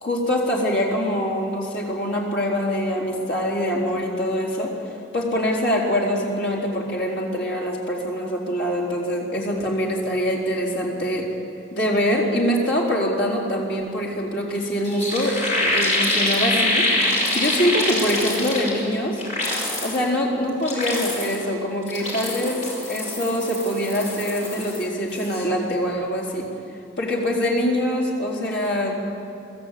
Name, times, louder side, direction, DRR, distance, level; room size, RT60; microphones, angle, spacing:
voice 1, 0.0-11.3 11.7-19.2 19.8-22.6 22.8-26.5 27.0-29.0, equal, 65° left, -3 dB, 4.2 m, -24 dB
sound 1, 14.5-14.6 14.8-18.9 19.2-20.0 20.5-21.4 21.8-24.8 25.1-25.4, left 1 dB, 35° left, 5.7 m, -25 dB
24.0 x 14.0 x 8.4 m, 2.5 s
head